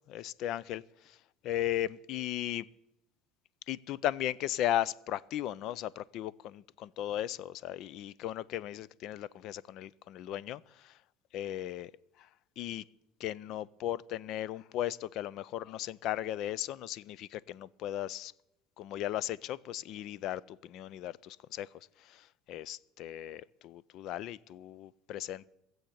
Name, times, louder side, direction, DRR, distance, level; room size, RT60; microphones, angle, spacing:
voice 1, 0.1-1.2 1.4-2.7 3.7-10.9 11.3-11.9 12.6-12.8 13.2-18.3 18.8-21.7 22.0-25.5, left 12 dB, 55° left, 0.4 m, -36 dB
16.0 x 7.8 x 8.6 m
cardioid pair, 135°, 0 cm